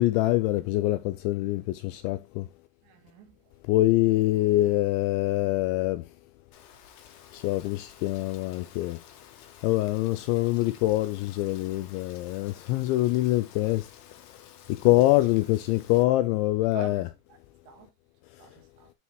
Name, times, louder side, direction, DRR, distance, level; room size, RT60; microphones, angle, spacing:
voice 1, 0.0-2.5 3.7-6.1 7.3-9.0 9.6-13.9 14.7-17.1, left 17 dB, 85° left, 2.6 m, -24 dB
voice 2, 2.8-3.4 4.0-4.1 14.8-15.3 15.7-16.2 16.7-17.4 17.7-17.9 18.4-18.9, right 7 dB, 70° right, 3.5 m, -48 dB
Rain, 6.5-16.0, left 9 dB, 70° left, 3.1 m, -53 dB
11.5 x 4.7 x 3.0 m
omnidirectional pair, 5.7 m